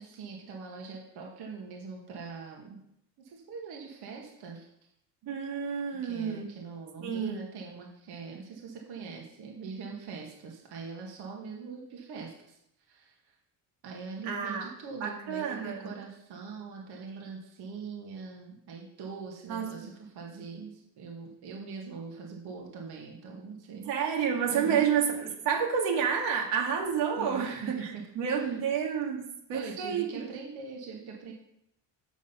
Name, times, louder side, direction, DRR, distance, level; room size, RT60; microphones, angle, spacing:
voice 1, 0.0-2.8 3.2-4.7 5.2-5.3 6.0-12.6 12.9-13.2 13.8-24.0 24.5-24.9 27.2-28.0 28.3-28.5 29.5-31.3, right 5 dB, 65° right, 0 dB, 1.9 m, -42 dB
voice 2, 5.3-6.5 7.0-7.4 14.2-14.7 15.0-15.9 19.5-19.7 23.9-30.3, right 7 dB, 85° right, 0 dB, 2.1 m, -30 dB
7.7 x 6.2 x 5.6 m, 0.78 s
cardioid pair, 125°, 41 cm